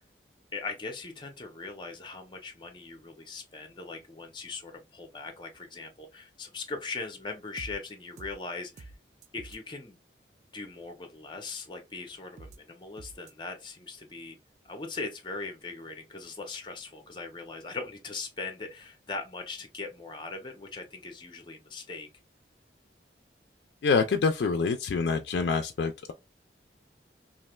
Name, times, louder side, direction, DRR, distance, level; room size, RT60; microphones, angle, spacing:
voice 1, 0.5-8.9 9.3-10.0 10.5-14.4 14.7-22.1, left 3 dB, 25° left, 0.6 m, -40 dB
sound 1, 7.6-7.7 8.2-8.3 8.8-8.9 9.2-9.6 12.4-12.6 13.0-13.3, right 3 dB, 40° right, 0.3 m, -45 dB
voice 2, 23.8-26.1, left 4 dB, 70° left, 0.3 m, -26 dB
3.1 x 2.4 x 2.2 m
head